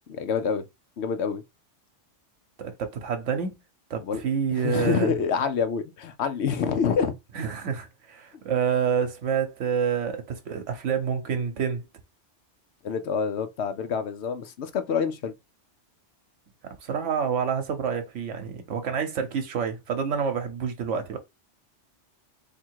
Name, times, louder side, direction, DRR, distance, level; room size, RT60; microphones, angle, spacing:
voice 1, 0.1-0.6 1.0-1.4 4.0-4.2 4.6-7.1 12.8-15.3, left 6 dB, 70° left, 0.9 m, -27 dB
voice 2, 2.6-3.5 3.9-5.1 7.3-11.8 16.8-21.2, right 7 dB, 85° right, 1.1 m, -28 dB
3.6 x 2.8 x 4.5 m
omnidirectional pair, 1.2 m